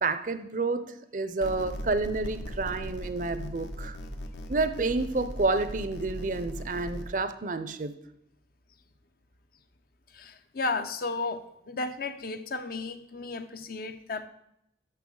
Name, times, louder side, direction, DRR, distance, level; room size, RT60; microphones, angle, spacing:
voice 1, 0.0-4.0 4.5-8.0, right 3 dB, 45° right, 12 dB, 0.5 m, -29 dB
sound 1, 1.4-7.0, equal, 70° left, 1.0 m, -38 dB
voice 2, 10.1-14.3, left 3 dB, 50° left, 9 dB, 0.6 m, -34 dB
12.0 x 6.6 x 3.8 m, 0.77 s
head